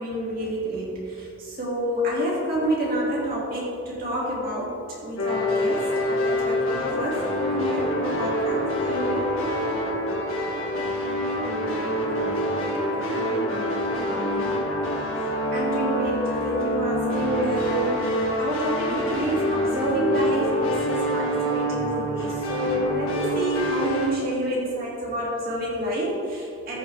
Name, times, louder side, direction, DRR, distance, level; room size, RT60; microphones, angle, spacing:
voice 1, 0.0-9.3 15.2-26.8, right 1 dB, 45° right, -5 dB, 2.5 m, -28 dB
sound 1, 5.2-24.1, equal, 80° left, 1.9 m, -26 dB
voice 2, 10.8-14.8, left 1 dB, 25° left, 1 dB, 0.7 m, -39 dB
13.5 x 6.7 x 3.4 m, 2.5 s
head